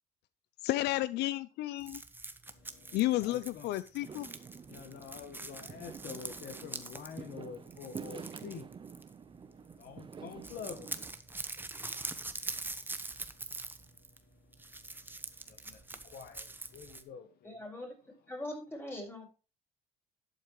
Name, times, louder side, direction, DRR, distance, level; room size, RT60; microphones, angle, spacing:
voice 1, 0.6-2.0 2.9-4.3, left 16 dB, 85° left, 0.5 m, -32 dB
sound 1, 1.8-9.4 9.7-9.9 10.1-17.0, right 2 dB, 10° right, 1.0 m, -44 dB
voice 2, 2.6-3.7 4.7-8.7 9.5-11.5 11.8-17.6, left 6 dB, 65° left, 1.3 m, -49 dB
Fireworks, 4.0-11.1, right 6 dB, 30° right, 0.7 m, -48 dB
voice 3, 17.4-17.9 18.3-19.3, left 1 dB, 15° left, 5.1 m, -41 dB
12.0 x 8.3 x 3.1 m
cardioid pair, 110°, 17 cm